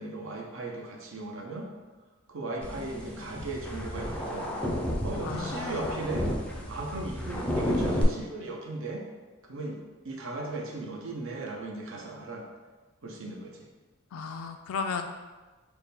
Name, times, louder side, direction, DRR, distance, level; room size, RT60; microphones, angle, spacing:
voice 1, 0.0-1.7 2.3-4.6 5.0-6.3 6.7-9.1 9.4-12.5 13.0-13.7, right 2 dB, 65° right, -1 dB, 0.7 m, -37 dB
sound 1, 2.6-8.0, equal, 5° left, 0.4 m, -32 dB
voice 2, 5.2-6.0 14.1-15.1, left 5 dB, 75° left, 6 dB, 0.4 m, -35 dB
3.5 x 2.2 x 4.2 m, 1.3 s
head